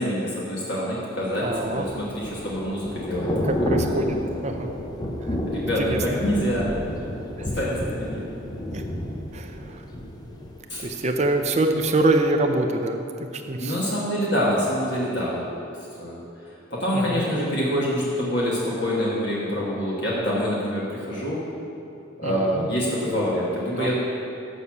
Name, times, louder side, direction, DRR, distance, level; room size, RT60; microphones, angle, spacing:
voice 1, 0.0-3.3 3.8-4.2 5.5-6.7 7.5-7.7 8.0-8.2 10.7-10.8 13.6-15.5 16.0-16.2 16.7-21.4 22.2-23.9, equal, 55° left, -6 dB, 1.4 m, -26 dB
Thunder / Rain, 1.4-11.3 11.7-11.9, left 1 dB, 20° left, 0.6 m, -30 dB
voice 2, 1.4-1.9 3.4-4.7 5.2-5.4 5.8-6.0 8.7-8.8 9.3-9.8 10.8-13.9 16.9-17.2 22.2-22.7 23.7-23.9, right 2 dB, 35° right, 5 dB, 0.6 m, -25 dB
6.9 x 6.3 x 7.0 m, 2.7 s
head